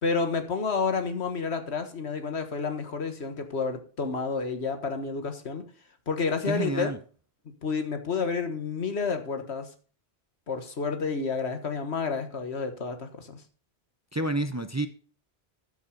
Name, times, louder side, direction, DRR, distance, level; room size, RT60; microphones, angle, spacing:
voice 1, 0.0-5.6 6.1-6.9 7.6-9.7 10.5-13.4, left 5 dB, 85° left, 7 dB, 1.8 m, -30 dB
voice 2, 6.4-7.0 14.1-14.9, right 2 dB, 20° right, 10 dB, 0.6 m, -29 dB
13.5 x 6.3 x 5.2 m, 0.40 s
omnidirectional pair, 1.1 m